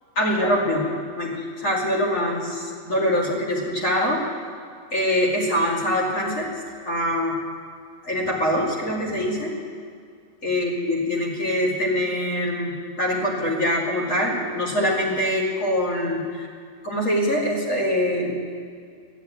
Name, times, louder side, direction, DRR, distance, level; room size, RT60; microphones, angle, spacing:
voice 1, 0.2-0.9 1.1-4.2 4.9-6.5 6.9-7.4 8.0-9.5 10.4-16.5 16.8-18.4, left 1 dB, 85° left, -3 dB, 2.9 m, -24 dB
13.0 x 8.0 x 9.1 m, 2.2 s
omnidirectional pair, 1.3 m